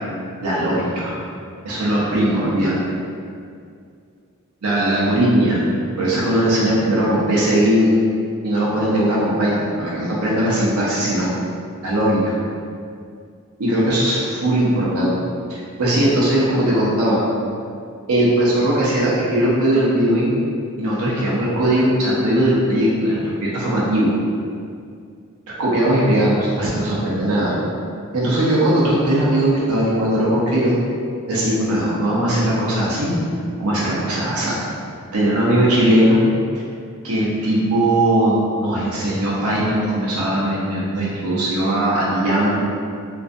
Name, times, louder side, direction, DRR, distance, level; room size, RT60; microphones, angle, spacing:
voice 1, 0.4-1.2 1.6-2.9 4.6-5.6 6.0-7.9 8.4-11.3 11.8-12.4 13.6-15.1 15.5-17.2 18.1-20.3 20.8-24.1 25.6-27.6 28.1-30.8 31.3-33.1 33.6-34.6 35.1-36.2 36.5-36.6 37.0-38.3 38.6-42.6, right 1 dB, 75° right, -6 dB, 0.6 m, -19 dB
2.5 x 2.3 x 2.4 m, 2.3 s
head